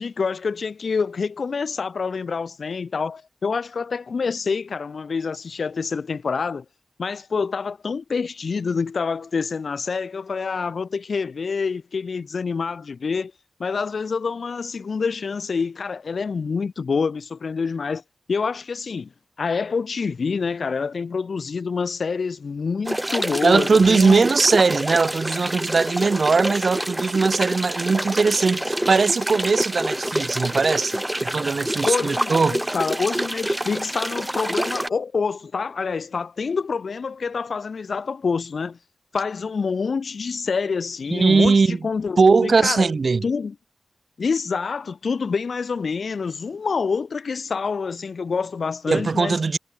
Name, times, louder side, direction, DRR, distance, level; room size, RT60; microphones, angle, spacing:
voice 1, 0.0-6.6 7.0-13.3 13.6-18.0 18.3-19.1 19.4-24.3 31.8-38.8 39.1-42.9 43.2-43.5 44.2-49.4, left 5 dB, 70° left, 1.0 m, -27 dB
sound 1, 22.8-34.9, right 1 dB, 10° right, 2.7 m, -27 dB
voice 2, 23.4-32.6 41.1-41.8 42.2-43.3 48.9-49.6, right 4 dB, 55° right, 1.4 m, -19 dB
wide cardioid pair, 120°, 0 cm